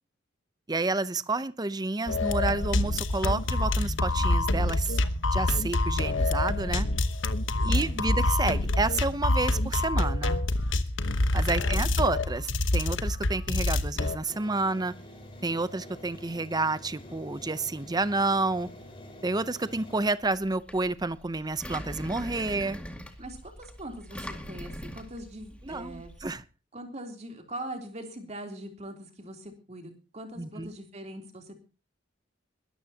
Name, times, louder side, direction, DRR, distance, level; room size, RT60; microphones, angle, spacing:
voice 1, 0.7-5.0 5.3-6.9 7.6-10.5 11.3-14.9 15.4-18.7 19.2-22.8 25.6-26.4 30.4-30.7, right 3 dB, 20° right, 14 dB, 0.7 m, -30 dB
sound 1, 2.1-14.2, left 2 dB, 80° left, 1.1 m, -26 dB
voice 2, 7.7-8.2 11.6-11.8 23.2-26.1 26.7-31.6, right 1 dB, 35° right, 3 dB, 3.4 m, -42 dB
sound 2, 14.3-20.1, left 1 dB, 30° left, 4.9 m, -47 dB
Engine, 20.2-26.3, equal, 5° left, 2.1 m, -42 dB
22.0 x 13.5 x 2.9 m, 0.33 s
head